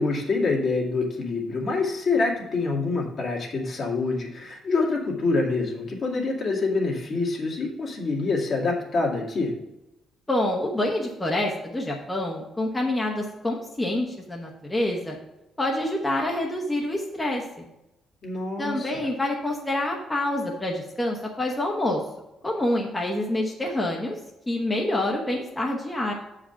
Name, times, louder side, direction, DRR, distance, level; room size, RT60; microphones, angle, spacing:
voice 1, 0.0-9.5 18.2-18.9, left 3 dB, 55° left, -2 dB, 2.1 m, -26 dB
voice 2, 10.3-15.2 15.6-17.6 18.6-22.0 22.4-24.1 24.5-26.1, left 1 dB, 15° left, -1 dB, 1.1 m, -27 dB
7.2 x 4.9 x 5.7 m, 0.93 s
cardioid pair, 90°, 0 cm